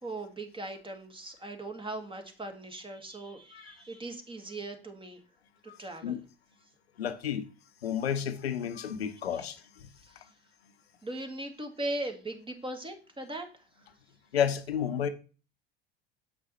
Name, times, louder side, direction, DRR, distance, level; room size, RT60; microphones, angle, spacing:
voice 1, 0.0-5.2 5.6-6.2 9.3-9.4 10.0-10.2 11.0-13.9, right 2 dB, 15° right, 1.6 m, -39 dB
voice 2, 7.0-7.5 7.8-9.9 14.3-15.1, left 8 dB, 90° left, 0.7 m, -31 dB
7.6 x 5.1 x 4.1 m
hypercardioid pair, 70°, 30 cm